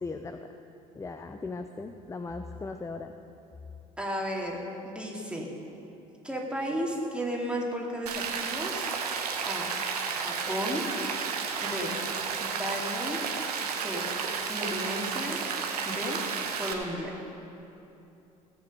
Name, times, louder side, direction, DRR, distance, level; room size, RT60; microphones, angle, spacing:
voice 1, 0.0-0.5 0.9-3.1, left 3 dB, 15° left, 7 dB, 0.6 m, -38 dB
voice 2, 4.0-5.5 6.2-8.9 9.4-9.7 10.2-10.8 11.6-12.0 12.4-13.2 13.7-14.0 14.5-15.4 15.8-16.2 16.5-17.2, equal, 5° right, -2 dB, 2.6 m, -34 dB
Rain, 8.1-16.7, right 6 dB, 80° right, 1.1 m, -32 dB
17.5 x 7.9 x 5.5 m, 2.9 s
figure-of-eight pair, 55°, 20 cm